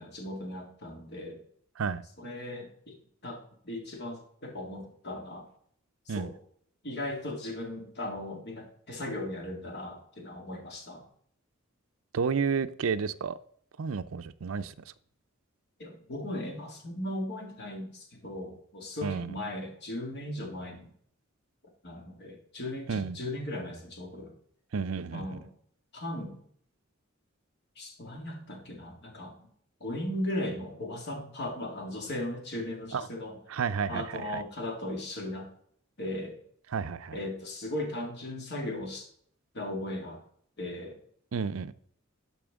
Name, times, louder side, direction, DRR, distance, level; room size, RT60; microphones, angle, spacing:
voice 1, 0.0-1.4 2.2-3.0 3.2-5.4 6.1-6.3 6.8-11.0 15.8-20.9 21.8-24.3 25.1-25.5 25.9-26.4 27.8-29.3 29.8-33.4 33.9-35.5 36.0-36.4 37.1-39.1 39.5-40.2 40.6-41.0, left 1 dB, 50° left, 2.2 m, -37 dB
voice 2, 12.1-13.4 13.8-14.7 19.0-19.3 22.9-23.2 24.7-25.4 32.9-33.1 33.5-34.4 36.7-37.2 41.3-41.7, right 5 dB, 70° right, 0.5 m, -31 dB
12.0 x 5.8 x 3.6 m
head